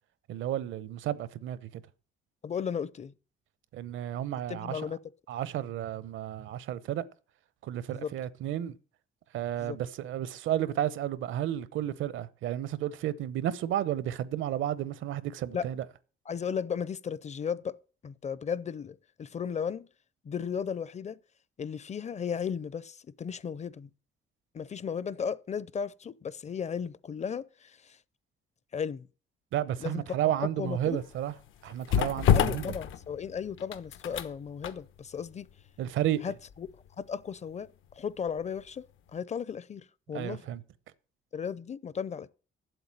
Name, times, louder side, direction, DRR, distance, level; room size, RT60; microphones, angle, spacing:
voice 1, 0.3-1.8 3.7-4.9 5.3-7.0 7.6-8.8 9.3-15.8 29.5-31.3 31.6-32.8 35.8-36.2 40.1-40.6, right 11 dB, 80° right, 0.9 m, -32 dB
voice 2, 2.4-3.1 4.5-5.0 7.9-8.1 9.6-9.8 15.5-15.7 16.3-17.8 18.0-19.9 20.2-21.2 21.6-23.9 24.5-28.0 28.7-29.1 29.8-30.0 30.6-31.0 32.3-35.5 36.2-36.7 37.0-37.7 38.0-38.8 39.1-40.5 41.3-42.3, left 7 dB, 35° left, 0.5 m, -35 dB
sound 1, 30.6-38.6 38.9-39.1, left 9 dB, 85° left, 1.0 m, -31 dB
8.0 x 8.0 x 8.7 m
cardioid pair, 90°, 20 cm